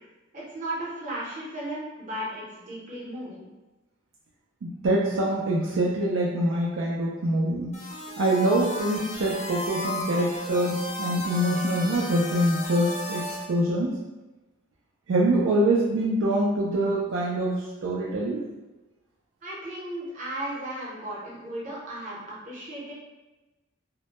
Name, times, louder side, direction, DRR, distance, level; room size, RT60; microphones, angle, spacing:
voice 1, 0.3-3.5 19.4-22.9, right 1 dB, 40° right, -7 dB, 0.7 m, -35 dB
voice 2, 4.6-7.8 8.2-14.0 15.1-18.4, right 1 dB, 75° right, -3 dB, 0.3 m, -25 dB
sound 1, 7.7-13.4, left 1 dB, 35° left, 0.5 m, -35 dB
2.1 x 2.1 x 2.8 m, 1.1 s
head